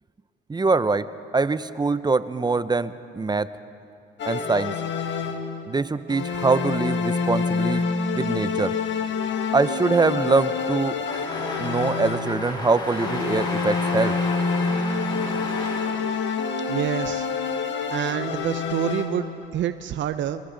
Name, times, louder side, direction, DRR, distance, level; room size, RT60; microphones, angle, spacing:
voice 1, 0.5-1.1 1.3-3.5 4.3-4.7 5.7-7.8 8.1-8.7 9.5-11.0 11.6-14.1, right 3 dB, 20° right, 14 dB, 0.6 m, -23 dB
sound 1, 4.2-5.7 6.1-12.5 12.9-19.4, left 5 dB, 65° left, 1.9 m, -27 dB
sound 2, 11.0-16.8, left 1 dB, 20° left, 4.0 m, -34 dB
voice 2, 16.7-17.3 17.9-20.4, right 11 dB, 70° right, 11 dB, 0.6 m, -27 dB
30.0 x 23.0 x 3.9 m, 2.5 s
cardioid pair, 90°, 20 cm